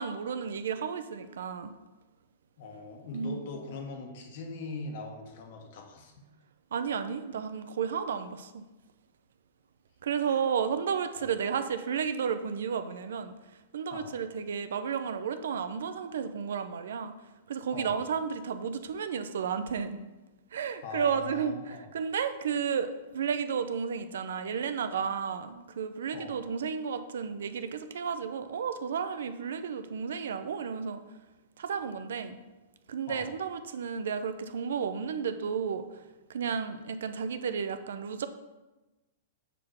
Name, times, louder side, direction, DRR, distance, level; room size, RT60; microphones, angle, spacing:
voice 1, 0.0-1.7 3.1-3.4 6.7-8.6 10.0-13.3 13.7-17.1 17.5-20.0 20.5-31.0 31.6-32.4 32.9-35.9 36.3-38.3, right 6 dB, 80° right, 9 dB, 0.6 m, -32 dB
voice 2, 2.6-6.1 10.2-10.4 11.2-11.3 13.9-14.1 17.7-18.0 20.8-21.9 26.1-26.4 33.1-33.3, left 3 dB, 55° left, 3 dB, 1.4 m, -41 dB
6.7 x 3.8 x 6.3 m, 1.1 s
hypercardioid pair, 150°, 0 cm